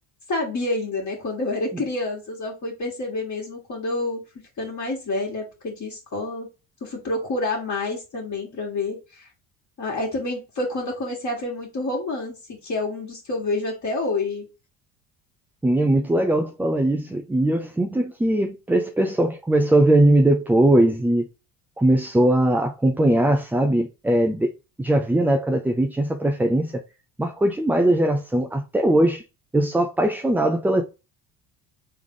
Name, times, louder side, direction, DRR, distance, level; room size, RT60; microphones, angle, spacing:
voice 1, 0.3-4.2 4.6-6.5 6.8-9.3 9.8-14.5, left 2 dB, 40° left, 1.7 m, -28 dB
voice 2, 15.6-21.3 21.8-24.5 24.8-26.7 27.2-29.2 29.5-30.8, right 1 dB, 5° right, 0.4 m, -20 dB
3.5 x 3.3 x 3.7 m
hypercardioid pair, 70°, 45 cm